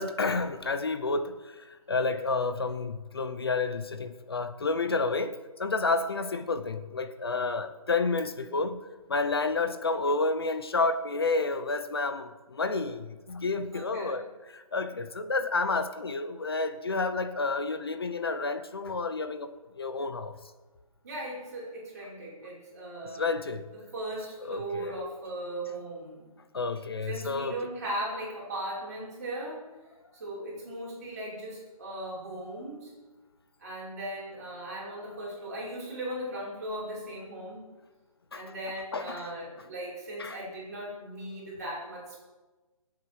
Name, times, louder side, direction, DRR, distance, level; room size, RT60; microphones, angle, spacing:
voice 1, 0.0-5.3 5.6-8.8 9.1-20.3 23.1-23.7 24.5-25.0 26.5-27.6 35.1-35.2 38.3-38.4 38.9-39.3 40.2-40.4, left 3 dB, 40° left, 0.8 m, -30 dB
voice 2, 13.7-14.2 21.0-23.3 23.7-26.3 27.0-29.6 30.1-32.9 33.6-37.6 38.3-42.2, right 1 dB, 25° right, 5.4 m, -38 dB
22.5 x 8.4 x 4.8 m
hypercardioid pair, 180°, 19 cm